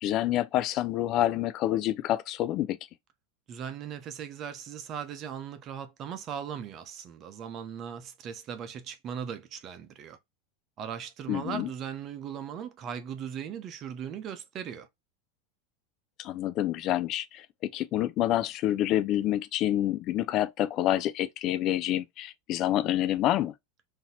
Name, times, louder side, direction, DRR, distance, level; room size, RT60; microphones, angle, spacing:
voice 1, 0.0-2.8 11.3-11.7 16.2-23.5, left 13 dB, 45° left, 0.4 m, -28 dB
voice 2, 3.5-10.2 10.8-14.9, right 8 dB, 40° right, 0.7 m, -38 dB
3.9 x 2.8 x 2.7 m
hypercardioid pair, 95°, 0 cm